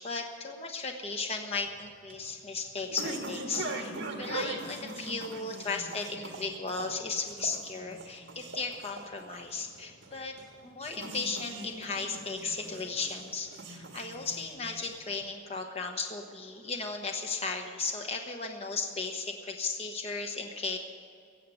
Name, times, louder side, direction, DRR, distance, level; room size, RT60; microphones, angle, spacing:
voice 1, 0.0-10.4 10.6-20.8, left 4 dB, 35° left, 3 dB, 1.0 m, -36 dB
sound 1, 1.6-15.2, right 2 dB, 70° right, 1.6 m, -42 dB
16.5 x 7.6 x 9.1 m, 2.3 s
head